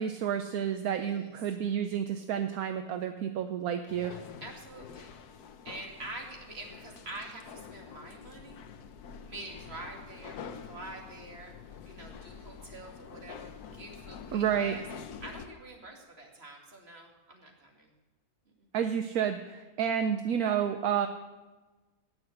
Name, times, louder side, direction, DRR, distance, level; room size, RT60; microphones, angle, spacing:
voice 1, 0.0-4.2 14.3-14.7 18.7-21.1, right 8 dB, 75° right, 8 dB, 1.2 m, -30 dB
voice 2, 0.9-1.3 4.4-5.2 5.6-8.6 9.3-11.6 11.8-14.9 15.2-17.9 18.6-18.7, right 2 dB, 40° right, 1 dB, 2.4 m, -46 dB
sound 1, 3.9-15.5, left 6 dB, 85° left, 1.4 m, -47 dB
17.5 x 6.2 x 7.8 m, 1.2 s
omnidirectional pair, 1.6 m